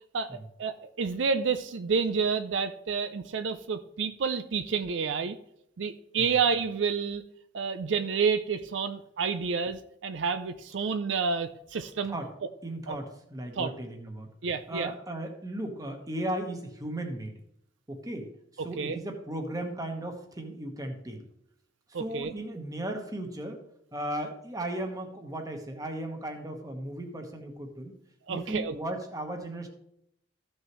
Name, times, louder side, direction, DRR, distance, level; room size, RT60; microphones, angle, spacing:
voice 1, 0.1-5.4 5.8-7.2 7.5-12.1 12.9-13.0 13.6-13.7 14.4-14.9 18.8-19.0 21.9-22.3 28.3-28.8, right 5 dB, 75° right, 10 dB, 0.5 m, -29 dB
voice 2, 12.6-14.3 14.7-17.4 17.9-18.3 18.5-21.3 21.9-23.6 23.9-28.0 28.3-29.7, right 1 dB, 20° right, 4 dB, 1.3 m, -36 dB
14.5 x 6.3 x 3.1 m, 0.76 s
head